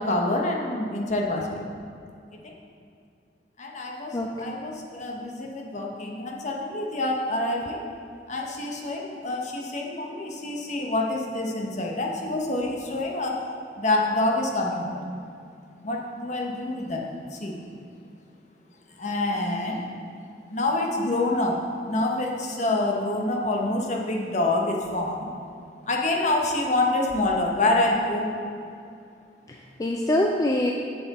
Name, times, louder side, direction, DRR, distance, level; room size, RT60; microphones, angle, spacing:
voice 1, 0.0-1.6 3.6-7.8 8.3-13.3 13.8-14.9 15.8-17.0 17.3-17.6 19.0-19.8 20.5-21.6 21.9-25.3 25.9-28.3, left 2 dB, 45° left, -1 dB, 1.1 m, -26 dB
voice 2, 4.1-4.5 29.5-30.7, left 1 dB, 20° left, 1 dB, 0.4 m, -25 dB
7.7 x 7.3 x 4.2 m, 2.5 s
head